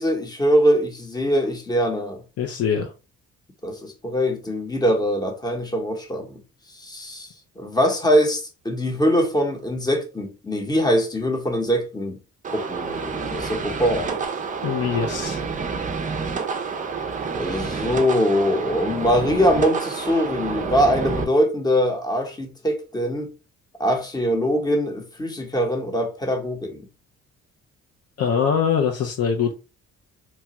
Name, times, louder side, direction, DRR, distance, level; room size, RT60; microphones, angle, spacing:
voice 1, 0.0-2.2 3.6-6.4 6.8-7.3 7.6-12.2 12.5-14.2 17.4-23.3 23.8-26.9, equal, 15° left, 0.8 m, -22 dB
voice 2, 2.4-2.9 14.6-15.4 28.2-29.5, left 7 dB, 55° left, 0.4 m, -23 dB
sound 1, 12.4-21.2, right 5 dB, 25° right, 0.4 m, -29 dB
2.9 x 2.2 x 2.9 m
cardioid pair, 90°, 30 cm